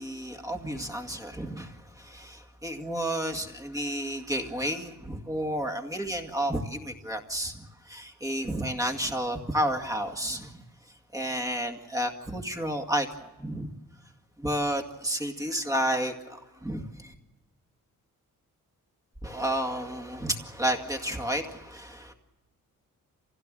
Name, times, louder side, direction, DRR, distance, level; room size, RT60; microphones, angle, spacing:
voice 1, 0.0-10.6 11.1-13.7 14.4-17.1 19.2-22.1, right 1 dB, 10° right, 4 dB, 2.1 m, -31 dB
27.0 x 16.5 x 7.7 m, 1.1 s
wide cardioid pair, 150°, 34 cm